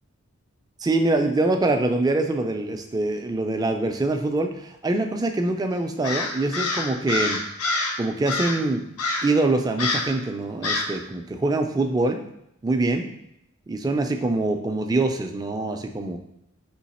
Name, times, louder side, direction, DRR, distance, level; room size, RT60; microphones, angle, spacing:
voice 1, 0.8-7.4 8.0-8.8 9.2-12.2 12.6-13.1 13.7-16.2, right 2 dB, 20° right, 5 dB, 0.3 m, -24 dB
Crow, 6.0-8.0 8.3-8.6 9.0-9.4 9.8-10.2 10.6-11.0, left 3 dB, 80° left, 0.6 m, -26 dB
3.9 x 2.8 x 4.1 m, 0.78 s
head